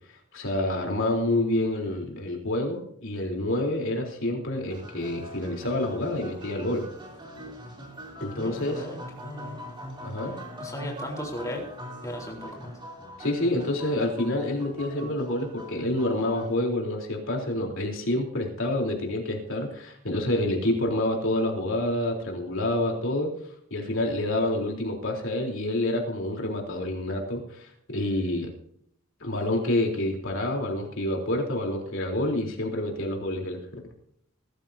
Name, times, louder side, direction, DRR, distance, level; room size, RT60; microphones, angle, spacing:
voice 1, 0.3-6.8 8.2-8.8 10.0-10.3 13.2-23.3 23.7-28.5 29.2-33.8, left 1 dB, 60° left, 0 dB, 3.8 m, -28 dB
sound 1, 4.7-16.5, equal, 20° right, 3.3 m, -42 dB
voice 2, 8.3-9.0 9.2-9.6 10.6-11.6 12.0-12.7, left 1 dB, 15° left, -1 dB, 4.0 m, -36 dB
21.0 x 13.0 x 2.8 m, 0.69 s
head